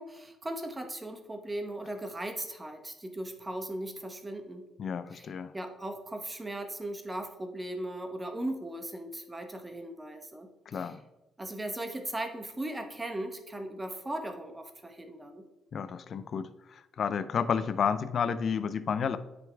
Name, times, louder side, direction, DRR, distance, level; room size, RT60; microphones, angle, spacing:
voice 1, 0.0-4.7 5.1-5.3 5.5-10.9 11.4-15.4, right 1 dB, 15° right, 5 dB, 1.0 m, -38 dB
voice 2, 4.8-5.5 10.7-11.0 15.7-19.2, left 6 dB, 55° left, 14 dB, 0.5 m, -31 dB
9.3 x 5.3 x 3.4 m, 1.0 s
cardioid pair, 90°, 0 cm